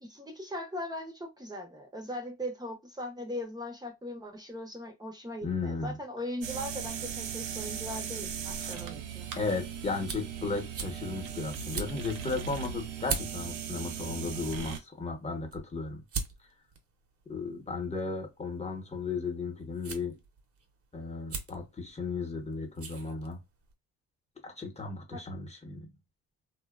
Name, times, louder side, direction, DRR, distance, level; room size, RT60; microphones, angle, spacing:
voice 1, 0.0-9.3 25.1-25.2, left 1 dB, 15° right, 0.7 m, -39 dB
voice 2, 5.4-5.9 8.6-8.8 9.4-16.0 17.3-20.2 20.9-23.4 24.4-25.9, left 4 dB, 20° left, 1.0 m, -35 dB
sound 1, 6.4-14.8, right 8 dB, 85° right, 0.6 m, -38 dB
sound 2, 9.8-23.7, right 5 dB, 50° right, 0.8 m, -43 dB
2.7 x 2.2 x 2.3 m
cardioid pair, 90°, 30 cm